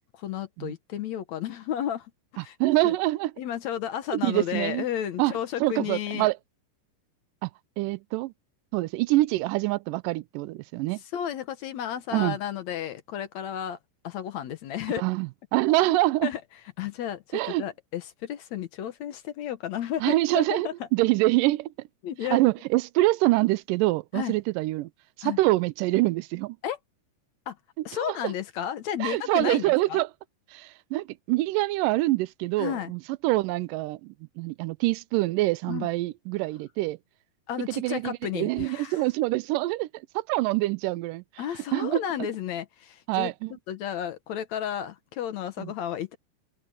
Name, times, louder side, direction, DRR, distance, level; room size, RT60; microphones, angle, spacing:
voice 1, 0.1-2.6 2.8-2.9 3.4-6.3 11.1-13.8 14.0-15.1 15.9-16.4 16.8-20.7 22.0-22.4 24.1-24.3 25.2-25.4 26.6-26.8 27.5-27.6 27.9-30.0 32.6-32.9 35.7-35.9 37.5-39.0 41.4-43.3 43.7-46.2, left 10 dB, 65° left, 2.1 m, -32 dB
voice 2, 2.4-3.3 4.1-4.9 5.2-5.3 5.6-6.4 7.4-7.5 7.8-8.3 8.7-11.0 12.1-12.4 15.0-16.3 17.3-17.7 20.0-21.7 22.3-24.9 25.2-26.6 27.8-28.3 29.0-30.1 30.5-37.0 37.7-39.9 40.2-41.4 41.7-42.0 43.1-43.5 45.6-45.7, right 18 dB, 85° right, 2.2 m, -25 dB
open air
omnidirectional pair, 3.8 m